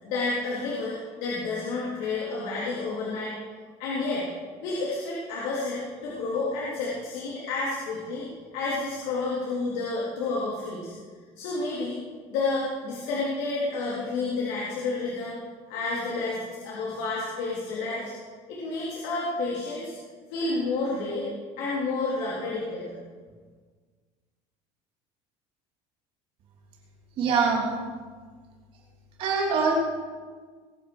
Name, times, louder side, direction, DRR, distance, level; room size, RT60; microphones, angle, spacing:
voice 1, 0.0-3.3 3.8-4.3 4.6-8.3 8.5-10.9 11.4-12.0 12.3-15.4 15.7-18.1 18.5-19.9 20.3-21.3 21.6-23.0, left 3 dB, 75° left, -6 dB, 3.6 m, -30 dB
voice 2, 27.2-27.6 29.2-29.7, right 5 dB, 45° right, -1 dB, 3.1 m, -23 dB
20.5 x 9.6 x 6.2 m, 1.6 s
cardioid pair, 175°, 13 cm